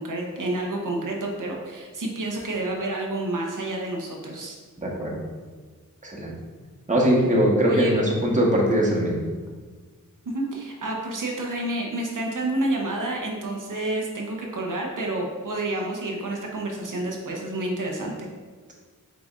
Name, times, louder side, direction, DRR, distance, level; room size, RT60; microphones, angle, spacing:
voice 1, 0.0-4.6 7.7-7.9 10.3-18.1, right 1 dB, 70° right, 0 dB, 0.8 m, -29 dB
voice 2, 4.8-5.2 6.0-6.3 6.9-9.2, equal, 20° right, -4 dB, 1.3 m, -21 dB
5.0 x 3.8 x 2.5 m, 1.4 s
cardioid pair, 45°, 33 cm